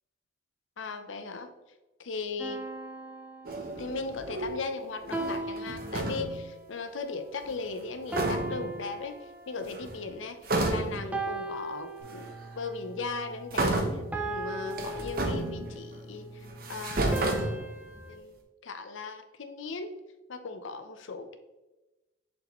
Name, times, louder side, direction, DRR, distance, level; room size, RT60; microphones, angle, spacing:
voice 1, 0.8-1.5 2.0-2.6 3.8-10.4 10.7-17.6 18.1-20.0 20.3-21.4, left 4 dB, 85° left, 8 dB, 0.7 m, -38 dB
sound 1, 2.4-4.1 5.1-6.6 8.1-9.8 11.1-12.6 14.1-15.9 17.1-18.2, right 2 dB, 5° right, 0.5 m, -38 dB
sound 2, 3.4-4.6 5.0-6.4 7.8-7.9 8.1-8.8 9.6-10.1 10.4-11.2 12.1-12.2 13.5-14.2 14.7-16.0 16.5-18.0, right 2 dB, 50° right, 0.9 m, -31 dB
sound 3, 12.0-17.0, equal, 45° left, 2.1 m, -49 dB
6.8 x 5.3 x 3.1 m, 1.1 s
head